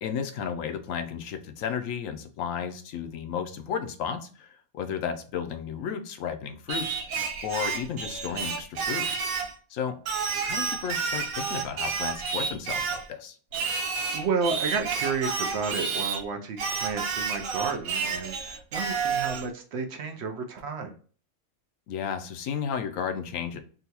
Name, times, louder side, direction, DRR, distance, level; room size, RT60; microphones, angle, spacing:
voice 1, 0.0-6.9 7.4-9.2 9.7-9.9 10.4-13.4 21.9-23.6, left 7 dB, 70° left, 7 dB, 0.9 m, -33 dB
Singing, 6.7-9.5 10.1-13.1 13.5-16.2 16.6-19.5, right 5 dB, 85° right, 1.1 m, -30 dB
voice 2, 14.1-20.9, right 5 dB, 65° right, 5 dB, 0.7 m, -32 dB
3.8 x 2.2 x 2.8 m, 0.42 s
omnidirectional pair, 1.5 m